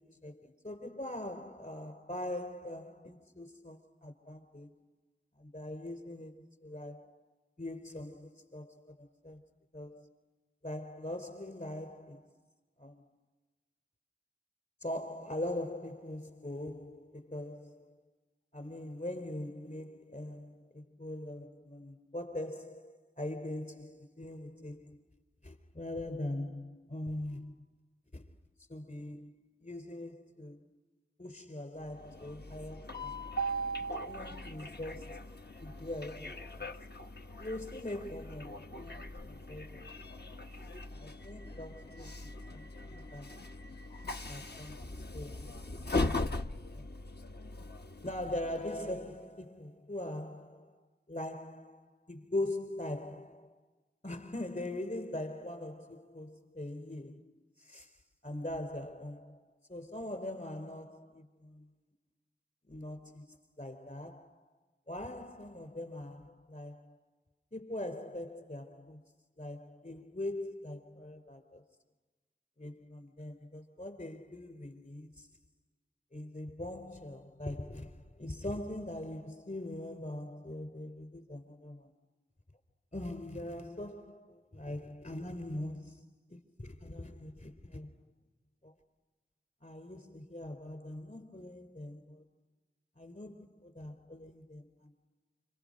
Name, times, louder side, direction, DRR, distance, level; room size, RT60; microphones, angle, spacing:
voice 1, 0.0-4.7 5.4-7.1 7.6-9.4 9.7-10.1 10.6-12.3 12.8-13.1 14.8-18.0 18.5-25.0 25.4-27.6 28.1-28.3 28.7-29.3 29.6-30.8 31.2-33.3 34.1-35.3 35.6-36.7 37.4-40.0 40.9-43.4 44.3-46.4 46.7-46.9 48.0-50.8 51.1-53.6 54.0-57.9 58.2-61.7 62.7-64.4 64.9-67.0 67.5-69.0 69.4-71.6 72.6-75.3 76.1-81.9 82.9-86.0 86.3-88.0 88.6-88.7 89.6-92.3 93.0-94.9, left 1 dB, 45° left, 4.1 m, -42 dB
Train, 31.9-49.1, left 1 dB, 65° left, 1.0 m, -40 dB
30.0 x 27.5 x 6.7 m
wide cardioid pair, 55°, 18 cm